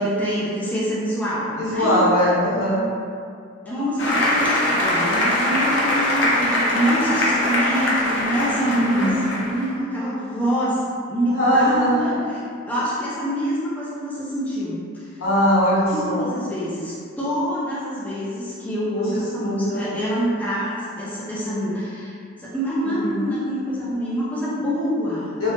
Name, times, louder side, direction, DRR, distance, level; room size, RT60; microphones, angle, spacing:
voice 1, 0.0-2.0 3.6-15.2 15.9-22.1 22.4-25.4, equal, 10° left, -9 dB, 0.4 m, -26 dB
voice 2, 1.6-2.9 8.6-9.3 11.3-12.1 15.2-16.3 19.4-19.9 22.8-23.2 25.4-25.5, equal, 85° left, -8 dB, 0.9 m, -21 dB
Applause, 4.0-9.7, left 1 dB, 60° left, 0.5 m, -22 dB
2.7 x 2.1 x 2.9 m, 2.3 s
head